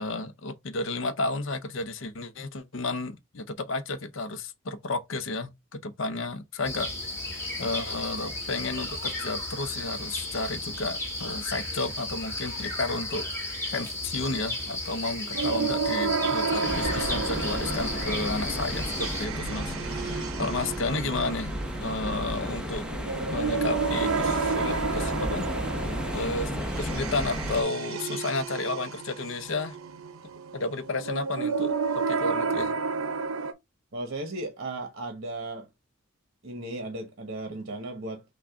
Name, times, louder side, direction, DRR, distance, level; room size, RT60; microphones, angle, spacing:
voice 1, 0.0-6.9 7.2-13.3 13.7-22.9 23.3-26.5 26.8-29.8 30.5-32.7, left 3 dB, 65° left, 0.7 m, -32 dB
sound 1, 6.6-19.3, left 1 dB, 10° left, 1.4 m, -34 dB
sound 2, 15.3-33.5, right 5 dB, 90° right, 0.6 m, -31 dB
sound 3, 16.6-27.6, equal, 5° right, 0.7 m, -33 dB
voice 2, 33.9-35.7 36.4-38.2, right 2 dB, 50° right, 1.1 m, -35 dB
6.0 x 2.3 x 3.6 m
head